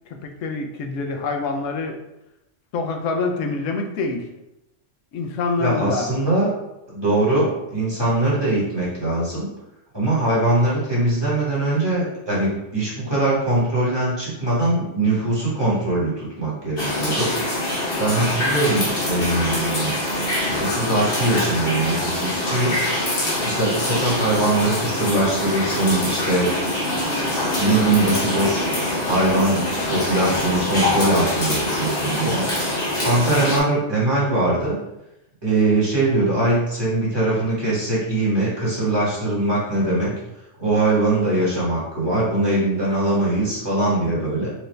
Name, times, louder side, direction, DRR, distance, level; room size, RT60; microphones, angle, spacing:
voice 1, 0.1-2.0 2.7-4.3 5.1-6.1 23.8-24.1, left 3 dB, 80° left, 3 dB, 0.9 m, -26 dB
voice 2, 5.6-6.5 6.9-9.5 9.9-17.3 18.0-19.9 20.6-22.8 23.4-26.5 27.5-28.7 29.0-32.4 33.0-34.8 35.4-40.1 40.6-44.5, right 2 dB, 20° right, -8 dB, 1.4 m, -21 dB
sound 1, 16.8-33.6, left 1 dB, 50° left, 1.2 m, -24 dB
sound 2, 24.4-33.9, right 1 dB, 65° right, 1.0 m, -38 dB
4.4 x 2.6 x 3.2 m, 0.90 s
omnidirectional pair, 1.3 m